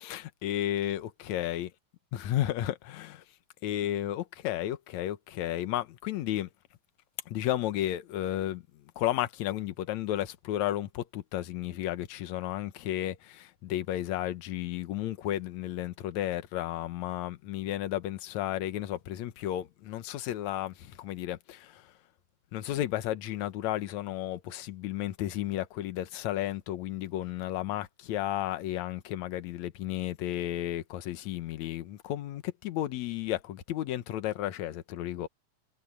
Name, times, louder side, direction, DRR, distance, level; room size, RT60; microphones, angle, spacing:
voice 1, 0.0-1.7 2.1-3.2 3.6-6.5 7.3-21.9 22.5-35.3, left 13 dB, 65° left, 2.2 m, -33 dB
omnidirectional pair, 3.7 m